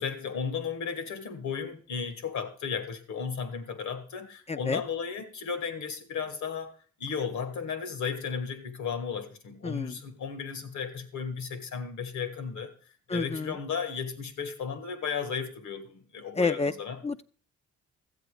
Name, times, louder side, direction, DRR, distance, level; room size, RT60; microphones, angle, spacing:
voice 1, 0.0-6.7 7.0-12.7 13.1-17.0, left 6 dB, 70° left, 1.7 m, -34 dB
voice 2, 4.5-4.8 9.6-10.0 13.1-13.6 16.4-16.7 17.0-17.2, left 4 dB, 20° left, 0.5 m, -29 dB
13.0 x 8.2 x 4.9 m
cardioid pair, 90°, 30 cm